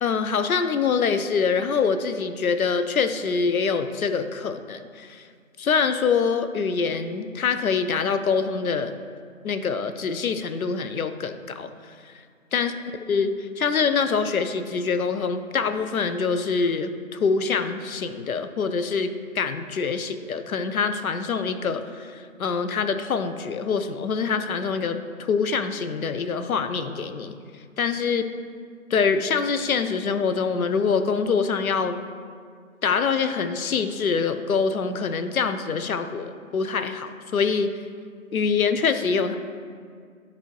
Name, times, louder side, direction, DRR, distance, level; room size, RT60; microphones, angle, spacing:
voice 1, 0.0-5.3 5.6-8.9 9.4-12.1 12.5-12.7 13.1-19.1 19.3-27.3 27.8-28.2 28.9-32.0 32.8-37.7 38.3-39.4, left 5 dB, 75° left, 10 dB, 0.6 m, -25 dB
10.5 x 4.1 x 3.2 m, 2.1 s
figure-of-eight pair, 165°, 42 cm